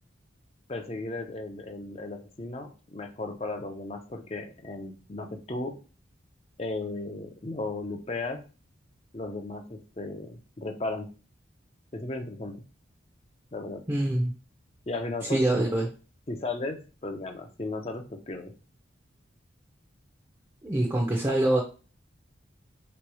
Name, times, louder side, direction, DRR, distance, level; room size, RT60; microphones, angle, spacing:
voice 1, 0.7-5.8 6.6-8.4 9.1-11.1 11.9-12.6 13.5-13.8 14.9-15.7 16.3-18.5, left 2 dB, 30° left, 4 dB, 0.6 m, -35 dB
voice 2, 13.9-14.3 15.3-15.9 20.6-21.6, right 1 dB, 20° right, -1 dB, 0.6 m, -24 dB
3.4 x 3.0 x 4.8 m, 0.35 s
head